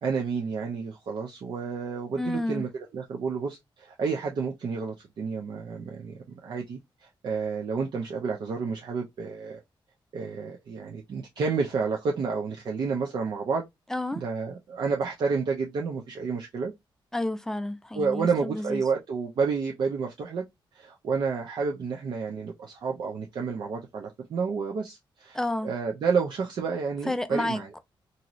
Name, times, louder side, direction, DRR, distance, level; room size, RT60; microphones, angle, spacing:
voice 1, 0.0-6.1 6.4-9.6 10.1-13.6 14.2-16.7 17.9-20.4 20.7-27.7, right 5 dB, 55° right, 0.5 m, -30 dB
voice 2, 2.2-2.7 13.9-14.2 17.1-18.8 25.3-25.7 27.1-27.8, left 1 dB, 5° left, 0.3 m, -30 dB
3.0 x 2.6 x 2.4 m
wide cardioid pair, 175°, 9 cm